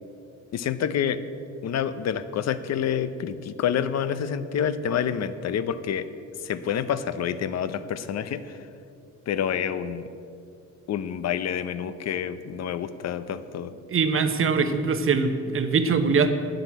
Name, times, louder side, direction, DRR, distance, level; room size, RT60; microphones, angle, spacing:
voice 1, 0.5-1.2 1.6-6.1 6.4-8.7 9.3-10.0 10.9-13.8, left 8 dB, 60° left, 13 dB, 0.7 m, -28 dB
voice 2, 13.9-16.3, right 5 dB, 45° right, 8 dB, 1.0 m, -22 dB
9.3 x 7.8 x 7.9 m, 2.5 s
cardioid pair, 90°, 30 cm